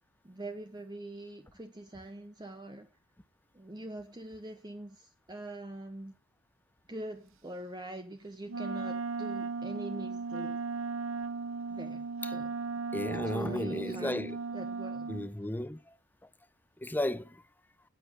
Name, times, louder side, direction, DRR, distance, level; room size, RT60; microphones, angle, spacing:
voice 1, 0.2-2.9 3.5-6.1 6.9-10.6 11.7-12.5 13.1-14.2 14.5-15.1, right 1 dB, 20° right, 0.9 m, -43 dB
Wind instrument woodwind instrument, 8.5-15.3, right 4 dB, 70° right, 0.9 m, -36 dB
voice 2, 12.9-14.4 15.1-15.9 16.8-17.4, left 1 dB, 10° left, 0.6 m, -34 dB
10.0 x 8.9 x 7.8 m
head